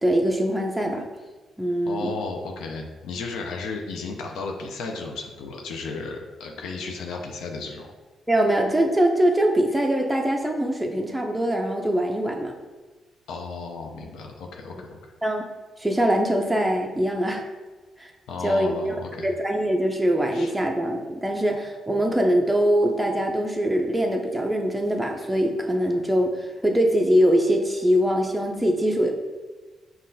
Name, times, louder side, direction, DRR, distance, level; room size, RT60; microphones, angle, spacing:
voice 1, 0.0-1.0 1.6-2.1 8.3-12.6 15.2-15.5 15.8-17.4 18.0-18.1 18.4-18.7 19.2-29.1, equal, 5° right, 1 dB, 0.5 m, -22 dB
voice 2, 1.9-7.9 13.3-15.0 18.3-19.3 20.3-20.5, left 4 dB, 90° left, 2 dB, 0.4 m, -34 dB
5.5 x 2.3 x 2.6 m, 1.3 s
cardioid pair, 75°, 0 cm